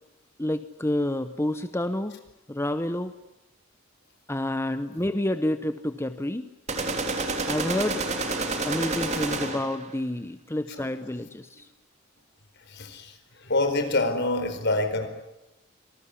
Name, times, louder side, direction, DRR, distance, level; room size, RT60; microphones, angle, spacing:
voice 1, 0.4-2.2 2.5-3.2 4.3-6.5 7.5-8.0 8.7-11.7, left 1 dB, 10° left, 10 dB, 0.9 m, -29 dB
sound 1, 6.7-9.8, right 3 dB, 35° right, 3.2 m, -29 dB
voice 2, 12.7-15.1, left 2 dB, 55° left, 8 dB, 4.5 m, -26 dB
26.5 x 20.0 x 9.8 m, 0.92 s
head